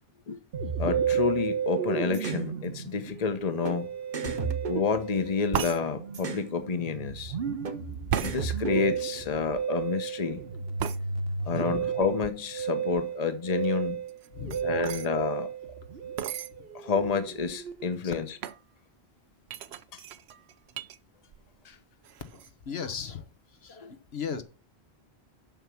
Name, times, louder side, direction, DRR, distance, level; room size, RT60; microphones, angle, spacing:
Musical instrument, 0.5-18.1, right 7 dB, 65° right, 1.2 m, -33 dB
voice 1, 0.8-3.9 4.6-7.4 8.2-10.4 11.5-14.0 14.6-15.5 16.7-18.3 19.9-20.0 21.6-21.8 23.8-23.9, left 5 dB, 40° left, 1.0 m, -29 dB
sound 1, 2.1-2.5 3.6-3.8 4.1-5.5 6.1-6.5 7.6-7.8 8.1-9.2, right 6 dB, 50° right, 1.1 m, -34 dB
voice 2, 4.2-4.6 8.6-8.9 11.3-11.7 14.3-14.8 18.0-18.1 22.3-24.4, left 6 dB, 75° left, 1.3 m, -38 dB
sound 2, 5.5-5.8 8.1-8.4 10.8-11.0 14.1-15.1 16.2-16.5 17.2-17.3 17.5-17.9 18.4-18.6 19.5-21.0 21.3-21.7 22.0-22.5, right 10 dB, 85° right, 0.9 m, -34 dB
7.5 x 6.2 x 7.0 m
omnidirectional pair, 1.1 m